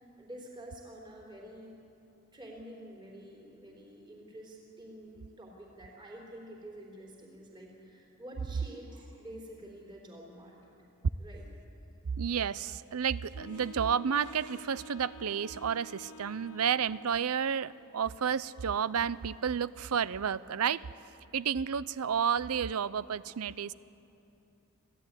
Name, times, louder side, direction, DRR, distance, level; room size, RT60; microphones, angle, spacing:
voice 1, 0.0-1.8 2.3-10.6 11.2-11.5, right 1 dB, 20° right, -1 dB, 3.7 m, -48 dB
voice 2, 12.2-20.8 21.3-23.7, right 7 dB, 85° right, 18 dB, 0.5 m, -31 dB
Wind instrument woodwind instrument, 13.3-17.5, left 1 dB, 65° left, 0.6 m, -50 dB
25.5 x 16.0 x 9.7 m, 2.8 s
head